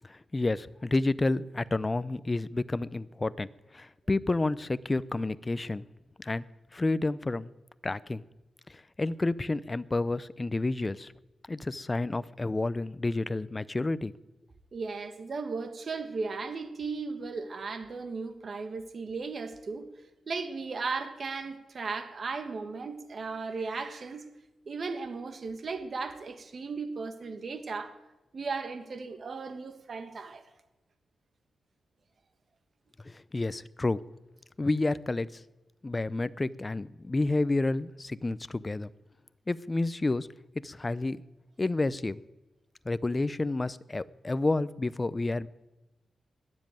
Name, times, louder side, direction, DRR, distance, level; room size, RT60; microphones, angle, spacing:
voice 1, 0.1-3.5 3.7-5.8 6.2-6.5 6.7-7.5 7.8-8.2 8.7-11.1 11.5-14.1 33.0-34.0 34.6-35.4 35.8-38.9 39.5-40.3 40.6-41.2 41.6-42.2 42.9-45.5, left 2 dB, 25° left, 17 dB, 0.5 m, -30 dB
voice 2, 14.7-19.9 20.3-24.3 24.6-28.0 28.3-30.4, right 4 dB, 50° right, 9 dB, 1.6 m, -36 dB
20.5 x 7.5 x 9.2 m, 1.0 s
wide cardioid pair, 120°, 0 cm